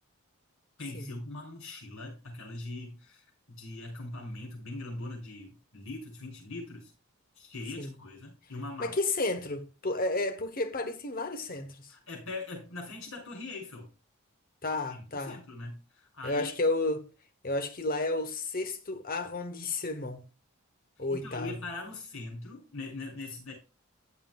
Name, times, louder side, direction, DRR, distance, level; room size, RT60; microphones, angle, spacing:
voice 1, 0.8-6.9 7.4-9.0 11.9-13.9 14.9-16.5 21.0-23.5, left 2 dB, 70° left, 6.5 m, -41 dB
voice 2, 8.8-11.9 14.6-15.4 16.2-17.0 17.4-20.2 21.0-21.6, left 2 dB, 45° left, 1.0 m, -32 dB
15.0 x 7.4 x 2.3 m
head